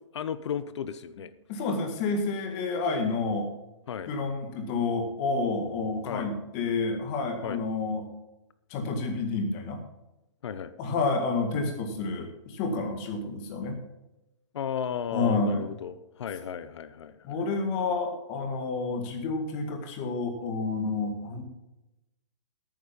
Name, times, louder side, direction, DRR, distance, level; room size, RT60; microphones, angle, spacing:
voice 1, 0.1-1.3 3.9-4.1 6.0-6.3 7.4-7.6 10.4-10.7 14.5-17.4, left 8 dB, 65° left, 14 dB, 0.9 m, -34 dB
voice 2, 1.5-3.5 4.1-8.0 8.7-9.8 10.8-13.8 15.1-15.7 17.2-21.4, left 3 dB, 25° left, 5 dB, 2.0 m, -29 dB
12.0 x 9.2 x 5.4 m, 0.94 s
hypercardioid pair, 165°, 16 cm